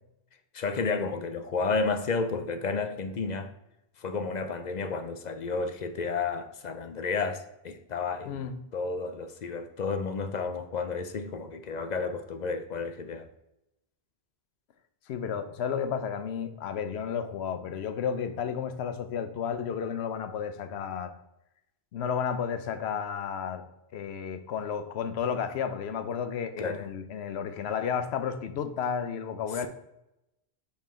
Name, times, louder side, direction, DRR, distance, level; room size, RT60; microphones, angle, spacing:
voice 1, 0.5-3.5 4.0-13.3 26.6-26.9, left 4 dB, 50° left, 0.6 m, -31 dB
voice 2, 8.3-8.6 15.1-21.1 21.9-29.7, left 7 dB, 90° left, 0.9 m, -32 dB
5.7 x 4.5 x 4.3 m
omnidirectional pair, 1.1 m